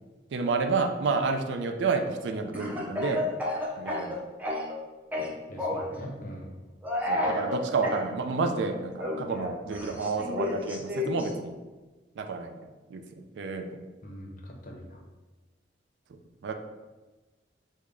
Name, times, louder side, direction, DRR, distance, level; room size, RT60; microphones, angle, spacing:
voice 1, 0.3-3.3 3.8-4.2 5.2-5.3 7.0-11.6 12.2-13.8 16.1-16.5, right 4 dB, 75° right, 5 dB, 0.3 m, -30 dB
Speech / Cough, 2.5-4.8 5.1-5.9 6.8-8.0 9.0-11.3, left 2 dB, 10° right, 0.4 m, -31 dB
voice 2, 5.5-6.5 14.0-15.0, equal, 50° left, 0 dB, 0.5 m, -42 dB
3.3 x 2.1 x 3.6 m, 1.2 s
head